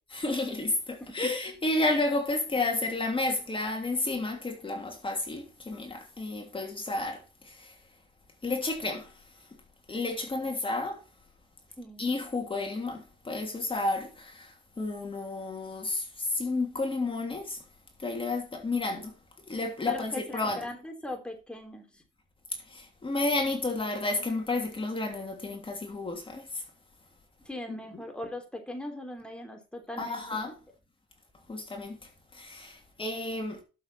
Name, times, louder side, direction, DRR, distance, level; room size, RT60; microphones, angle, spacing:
voice 1, 0.1-7.8 8.4-9.1 9.9-11.0 12.0-17.6 18.0-19.1 19.5-20.6 22.7-26.6 27.7-27.8 30.0-30.5 31.5-32.0 32.3-33.6, left 2 dB, 25° left, 3.1 m, -31 dB
voice 2, 11.8-12.1 19.9-22.0 27.5-30.5, left 1 dB, 5° left, 3.3 m, -40 dB
12.5 x 7.5 x 4.3 m
cardioid pair, 90°, 20 cm